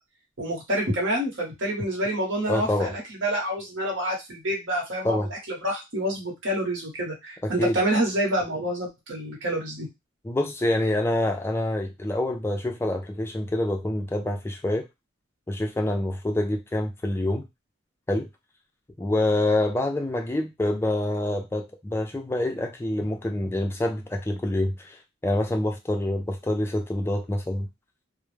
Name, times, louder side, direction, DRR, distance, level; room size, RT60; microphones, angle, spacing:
voice 1, 0.4-9.9, right 1 dB, 70° right, -1 dB, 1.0 m, -27 dB
voice 2, 2.5-2.9 5.0-5.3 7.4-7.8 10.2-14.9 15.5-17.4 18.1-18.3 19.0-27.7, left 1 dB, 10° left, 3 dB, 0.3 m, -26 dB
2.3 x 2.0 x 3.1 m, 0.22 s
head